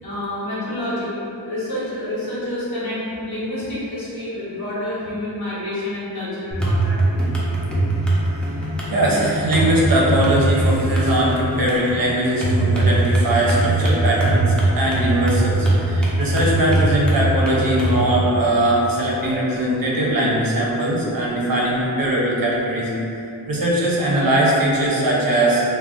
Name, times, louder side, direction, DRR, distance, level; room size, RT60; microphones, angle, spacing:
voice 1, 0.0-1.2 1.4-7.0, left 1 dB, 55° left, -10 dB, 1.1 m, -28 dB
sound 1, 6.5-18.0, right 2 dB, ahead, 0.5 m, -21 dB
voice 2, 8.9-22.9 23.5-25.6, right 1 dB, 50° right, -5 dB, 0.6 m, -20 dB
2.3 x 2.2 x 3.6 m, 2.8 s
wide cardioid pair, 70°, 46 cm